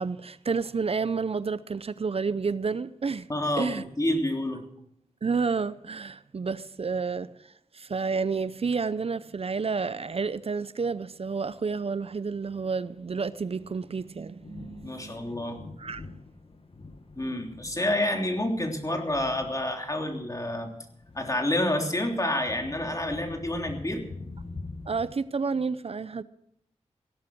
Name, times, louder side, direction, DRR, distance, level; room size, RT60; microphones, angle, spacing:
voice 1, 0.0-3.3 3.6-3.8 5.2-15.1 15.8-16.0 24.9-26.2, right 5 dB, 55° right, 0.6 m, -30 dB
voice 2, 3.3-4.6 14.8-15.6 17.1-20.7 21.1-24.0, left 1 dB, 30° left, 3.2 m, -28 dB
Thunder, 11.5-25.1, left 3 dB, 50° left, 1.5 m, -46 dB
16.5 x 11.5 x 6.1 m
cardioid pair, 50°, 12 cm